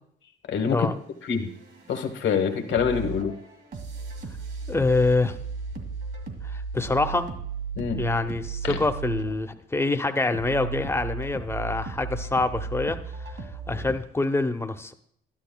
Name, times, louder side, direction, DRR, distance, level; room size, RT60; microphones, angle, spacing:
voice 1, 0.5-0.9 1.3-1.5 1.9-3.3 7.8-8.0 8.6-8.8, left 6 dB, 70° left, 5 dB, 1.2 m, -25 dB
sound 1, 1.3-14.0, right 4 dB, 55° right, 2.1 m, -36 dB
voice 2, 4.7-5.4 6.4-7.3 7.9-13.3 13.7-14.9, left 3 dB, 10° left, 8 dB, 0.7 m, -26 dB
12.5 x 10.5 x 2.2 m, 0.66 s
cardioid pair, 90°, 20 cm